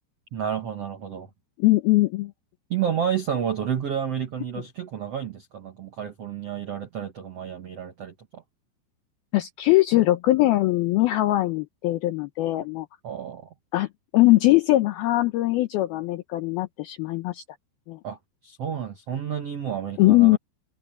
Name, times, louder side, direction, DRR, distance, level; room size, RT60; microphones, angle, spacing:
voice 1, 0.3-1.3 2.7-8.4 13.0-13.5 18.0-18.2 18.4-20.4, right 8 dB, 80° right, 1.4 m, -30 dB
voice 2, 1.6-2.3 9.3-12.9 13.7-13.9 14.1-17.4 17.9-18.0 20.0-20.4, left 18 dB, 85° left, 2.2 m, -21 dB
omnidirectional pair, 5.3 m